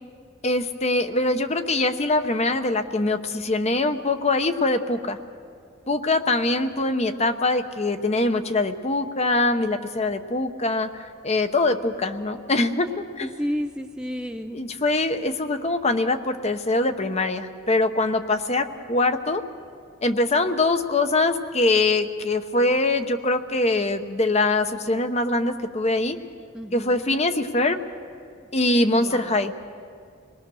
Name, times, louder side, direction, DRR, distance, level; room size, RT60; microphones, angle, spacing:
voice 1, 0.4-5.2 5.9-12.9 13.2-13.3 14.5-19.4 20.0-26.2 26.7-27.8 28.5-29.5, left 2 dB, 30° left, 9 dB, 0.9 m, -23 dB
voice 2, 13.2-14.6 26.5-27.2 29.0-29.4, equal, 5° right, 5 dB, 0.5 m, -32 dB
26.5 x 20.0 x 6.3 m, 2.2 s
head